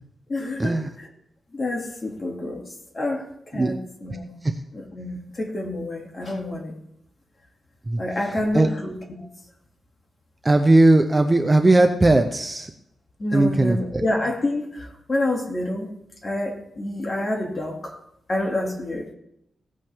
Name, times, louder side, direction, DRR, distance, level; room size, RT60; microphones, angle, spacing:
voice 1, 0.3-1.1 1.5-4.4 4.7-6.7 8.0-9.3 13.2-15.9 16.2-18.0 18.3-19.1, left 1 dB, 30° left, 0 dB, 2.4 m, -28 dB
voice 2, 10.4-12.7 13.3-14.0, right 2 dB, 15° right, 6 dB, 0.7 m, -18 dB
17.0 x 8.4 x 3.6 m, 0.79 s
wide cardioid pair, 150°, 0 cm